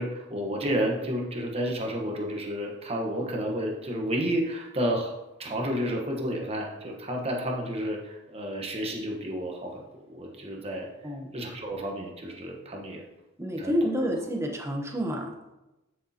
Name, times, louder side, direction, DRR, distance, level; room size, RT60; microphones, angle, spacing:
voice 1, 0.0-5.1 5.4-10.9 11.3-13.0 13.6-13.7, equal, 30° right, 1 dB, 1.2 m, -31 dB
voice 2, 13.4-15.5, equal, 15° right, 1 dB, 0.8 m, -29 dB
11.5 x 6.5 x 2.9 m, 1.0 s
head